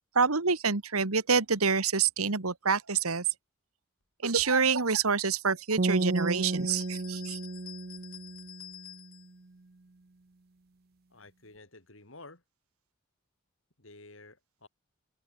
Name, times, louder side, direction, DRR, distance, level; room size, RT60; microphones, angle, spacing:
voice 1, 0.2-3.2 4.2-7.4, right 5 dB, 90° right, 1.8 m, -27 dB
sound 1, 5.8-9.0, right 2 dB, 45° right, 0.8 m, -32 dB
sound 2, 6.0-9.3, left 13 dB, 80° left, 7.1 m, -49 dB
voice 2, 11.1-12.4 13.8-14.7, left 2 dB, 65° left, 4.0 m, -51 dB
head